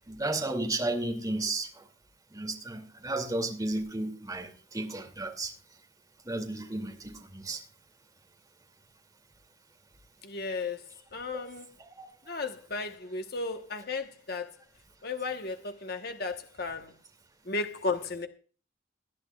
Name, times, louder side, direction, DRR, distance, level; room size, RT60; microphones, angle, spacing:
voice 1, 0.1-1.7 2.3-5.5 6.3-7.6 11.3-11.4 12.0-12.1, right 2 dB, 20° right, 2.5 m, -33 dB
voice 2, 10.2-10.8 11.1-11.7 12.3-14.5 15.0-16.9 17.5-18.3, left 3 dB, 50° left, 1.2 m, -34 dB
19.5 x 11.5 x 2.4 m
head